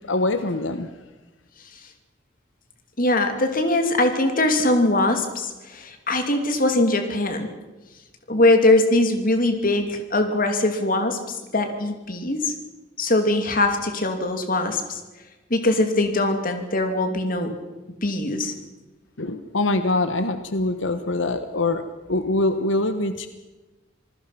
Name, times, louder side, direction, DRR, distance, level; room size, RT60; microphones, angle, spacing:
voice 1, 0.1-0.9 19.2-21.8 22.1-23.3, left 2 dB, 90° left, 10 dB, 1.2 m, -23 dB
voice 2, 3.0-7.5 8.3-12.5 13.0-15.0 15.5-17.5 18.0-18.5, left 2 dB, 50° left, 6 dB, 2.8 m, -21 dB
27.0 x 19.5 x 5.9 m, 1.2 s
head